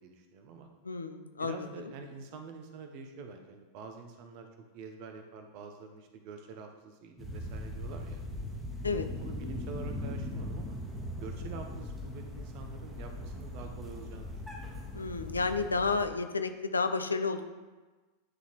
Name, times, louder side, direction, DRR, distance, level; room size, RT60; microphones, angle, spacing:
voice 1, 0.0-0.7 1.4-4.5 4.7-8.2 9.2-10.8 11.2-14.6, right 4 dB, 45° right, 5 dB, 0.8 m, -46 dB
voice 2, 0.8-1.7 8.8-9.1 14.9-17.5, left 4 dB, 75° left, 9 dB, 0.4 m, -31 dB
sound 1, 7.2-16.1, left 1 dB, 10° right, 1.3 m, -40 dB
9.6 x 4.0 x 3.1 m, 1.3 s
figure-of-eight pair, 90°, 0 cm